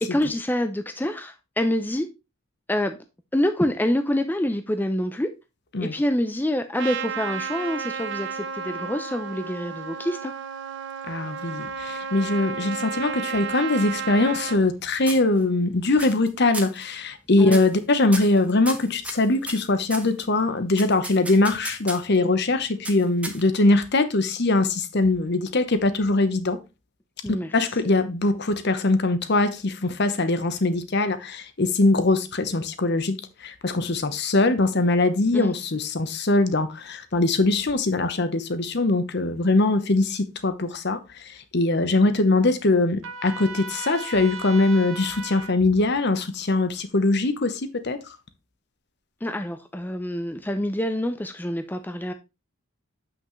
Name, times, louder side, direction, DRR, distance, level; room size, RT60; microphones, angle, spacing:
voice 1, 0.0-2.1 2.7-3.0 3.3-5.3 5.8-10.3 17.4-17.6 27.2-27.5 35.3-35.6 49.2-52.1, left 1 dB, 10° left, 0.5 m, -26 dB
Trumpet, 6.7-14.6, right 6 dB, 60° right, 0.6 m, -32 dB
voice 2, 11.1-26.6 27.5-48.0, left 2 dB, 55° left, 0.9 m, -22 dB
sound 1, 13.8-14.8 15.1-15.6 16.0-16.3 16.5-16.8 17.5-17.8 18.1-20.1 20.8-22.2 22.8-23.7, right 2 dB, 5° right, 1.0 m, -35 dB
Trumpet 2, 43.0-45.5, right 4 dB, 80° right, 1.1 m, -36 dB
7.9 x 6.0 x 3.1 m
head